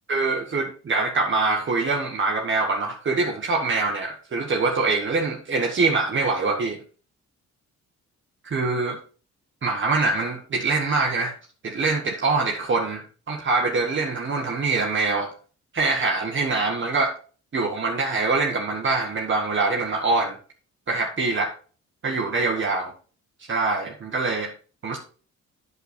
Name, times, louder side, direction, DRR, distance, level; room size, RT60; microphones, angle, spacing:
voice 1, 0.1-6.8 8.4-9.0 9.6-11.3 11.6-15.3 15.7-17.1 17.5-20.4 20.9-21.5 22.0-22.9 23.5-24.5 24.8-25.0, right 3 dB, 40° right, 1.4 m, -24 dB
8.1 x 6.8 x 4.2 m
cardioid pair, 90°, 30 cm